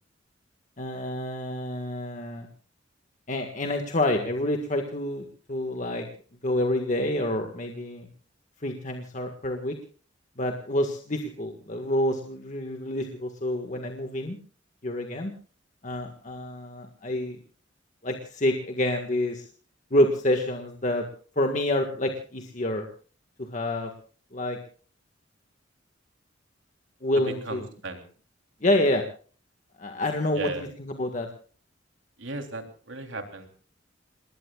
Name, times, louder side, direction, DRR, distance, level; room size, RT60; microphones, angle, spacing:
voice 1, 0.8-2.5 3.3-6.1 6.4-8.1 8.6-9.8 10.4-14.4 14.8-15.3 15.8-17.4 18.0-19.4 19.9-21.1 21.4-22.9 23.4-23.9 24.3-24.6 27.0-27.6 28.6-29.0 29.8-31.3, left 1 dB, 40° left, 4 dB, 1.8 m, -28 dB
voice 2, 27.2-28.0 30.3-30.7 32.2-33.5, right 2 dB, 80° right, 5 dB, 3.4 m, -36 dB
28.5 x 20.0 x 2.4 m, 0.40 s
head